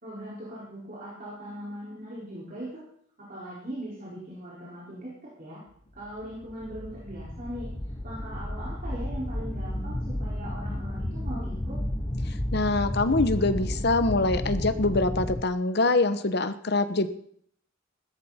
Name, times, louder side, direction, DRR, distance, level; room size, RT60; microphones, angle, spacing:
voice 1, 0.0-2.8 3.2-5.6 5.9-7.7 8.0-11.8, right 1 dB, 40° right, -7 dB, 5.0 m, -40 dB
sound 1, 6.2-15.4, left 1 dB, 15° left, 0.7 m, -32 dB
voice 2, 12.5-17.1, left 2 dB, 50° left, 11 dB, 1.0 m, -24 dB
15.5 x 13.5 x 4.3 m, 0.64 s
head